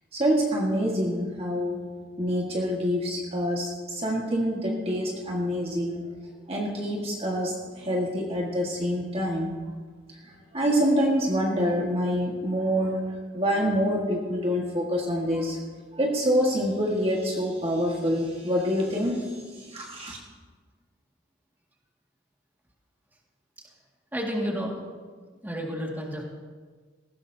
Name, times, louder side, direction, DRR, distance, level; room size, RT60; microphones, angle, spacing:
voice 1, 0.1-1.9 2.2-6.1 6.5-9.6 10.5-15.6 15.9-20.2, equal, 30° right, -1 dB, 1.6 m, -26 dB
voice 2, 24.1-24.7 25.4-26.3, equal, 10° right, -1 dB, 2.0 m, -31 dB
19.0 x 16.0 x 2.8 m, 1.5 s
head